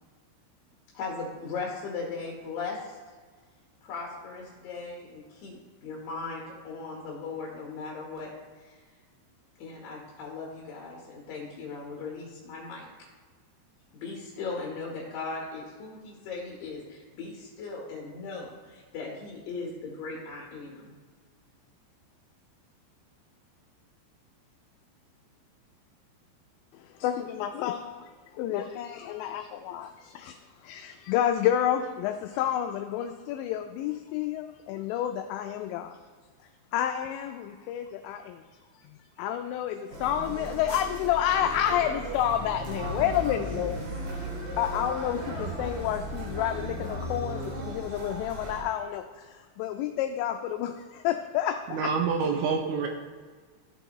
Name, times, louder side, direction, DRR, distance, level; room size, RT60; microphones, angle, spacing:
voice 1, 0.9-3.0 3.8-8.3 8.6-8.8 9.6-12.9 13.9-20.9, left 4 dB, 65° left, -3 dB, 2.4 m, -38 dB
voice 2, 26.7-30.4 30.6-36.0 36.7-38.4 38.8-43.8 44.6-51.8, left 10 dB, 85° left, 6 dB, 2.6 m, -30 dB
sound 1, 39.9-48.6, equal, 60° right, 2.9 m, -36 dB
voice 3, 51.7-52.9, right 5 dB, 80° right, 3 dB, 3.0 m, -27 dB
14.0 x 5.7 x 3.0 m, 1.5 s
omnidirectional pair, 5.5 m